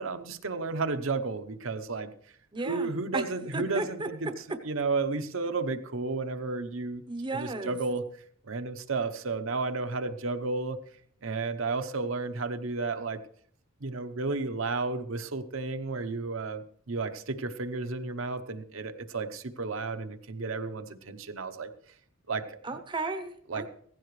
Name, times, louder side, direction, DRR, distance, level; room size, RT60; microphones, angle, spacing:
voice 1, 0.0-2.1 2.6-4.3 4.6-7.0 7.3-8.0 8.4-10.8 11.2-13.2 13.8-21.7 22.3-22.6 23.5-23.6, right 3 dB, 65° right, 8 dB, 0.9 m, -32 dB
voice 2, 2.5-3.2 3.5-4.1 7.1-7.8 22.6-23.7, right 3 dB, 25° right, 7 dB, 0.8 m, -34 dB
16.5 x 15.5 x 3.2 m, 0.62 s
head